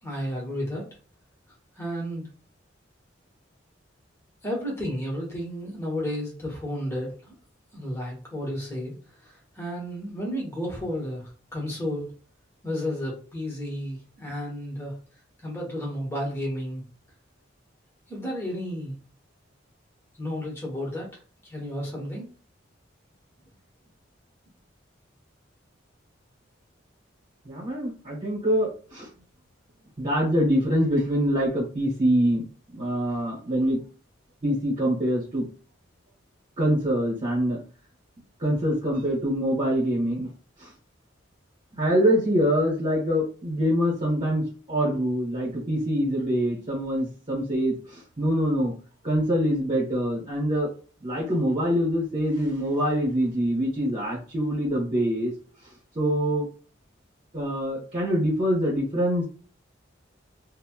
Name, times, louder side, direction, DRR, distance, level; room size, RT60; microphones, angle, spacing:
voice 1, 0.0-0.9 1.8-2.3 4.4-7.3 7.7-8.9 9.2-11.2 11.5-12.1 12.6-14.9 15.4-16.8 18.1-19.0 20.2-21.1 21.4-22.3, equal, 15° left, -3 dB, 1.1 m, -32 dB
voice 2, 27.4-29.1 30.0-32.5 32.7-33.8 34.4-35.5 36.6-37.6 38.4-40.3 40.6-40.7 41.8-47.8 48.2-48.7 49.0-50.7 51.0-55.3 55.9-56.4 57.3-59.3, equal, 35° right, -5 dB, 1.2 m, -24 dB
2.9 x 2.1 x 3.0 m, 0.39 s
head